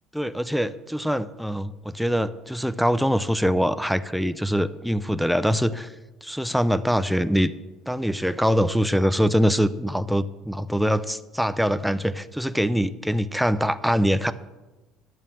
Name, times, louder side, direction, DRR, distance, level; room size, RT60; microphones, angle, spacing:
voice 1, 0.1-5.9 6.2-7.5 7.9-14.3, equal, ahead, 13 dB, 0.6 m, -23 dB
11.0 x 8.9 x 6.3 m, 1.1 s
hypercardioid pair, 70°, 0 cm